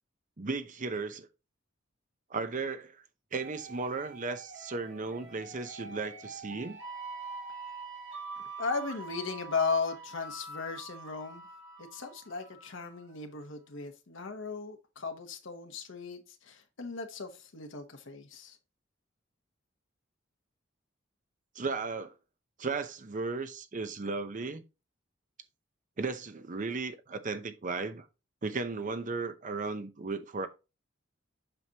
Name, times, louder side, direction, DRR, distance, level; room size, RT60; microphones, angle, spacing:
voice 1, 0.4-1.3 2.3-3.0 3.3-6.8 21.6-22.1 22.6-24.6 26.0-28.1 28.4-30.5, right 4 dB, 40° right, 0.7 m, -35 dB
sound 1, 3.4-13.0, right 3 dB, 80° right, 2.6 m, -45 dB
voice 2, 8.4-11.5 11.8-18.6, left 4 dB, 70° left, 1.0 m, -36 dB
7.7 x 5.9 x 2.8 m
head